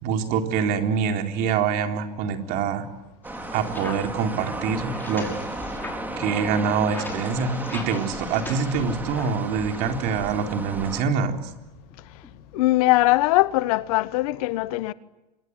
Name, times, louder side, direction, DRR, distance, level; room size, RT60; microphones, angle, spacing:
voice 1, 0.0-2.9 3.5-5.3 6.2-11.5, right 6 dB, 45° right, 4.0 m, -25 dB
sound 1, 3.2-9.5 9.8-12.7, left 3 dB, 10° left, 5.8 m, -42 dB
sound 2, 3.2-11.0, right 1 dB, 10° right, 3.3 m, -34 dB
voice 2, 12.5-14.9, left 19 dB, 60° left, 1.2 m, -21 dB
26.0 x 22.0 x 9.7 m
supercardioid pair, 145°, 21 cm